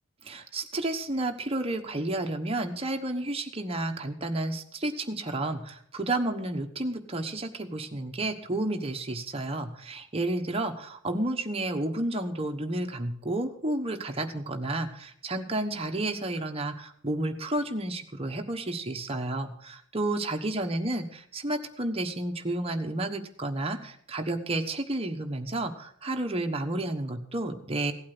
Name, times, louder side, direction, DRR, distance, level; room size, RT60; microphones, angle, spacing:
voice 1, 0.3-27.9, right 2 dB, 30° right, 4 dB, 1.2 m, -31 dB
16.0 x 8.6 x 6.0 m, 0.66 s
head